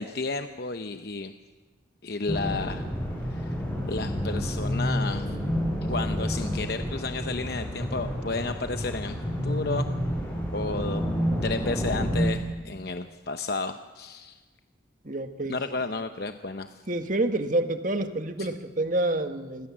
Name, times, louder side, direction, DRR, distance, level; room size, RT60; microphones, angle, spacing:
voice 1, 0.0-1.3 2.0-2.9 3.3-3.6 3.9-5.4 5.9-9.2 9.4-9.9 10.5-11.0 11.4-14.4 15.5-16.8 18.4-18.5, left 3 dB, 55° left, 8 dB, 0.9 m, -32 dB
sound 1, 2.3-12.3, equal, 10° left, 6.7 m, -29 dB
voice 2, 15.0-15.6 16.9-19.7, right 2 dB, 45° right, 7 dB, 1.7 m, -28 dB
28.0 x 21.0 x 7.5 m, 1.3 s
head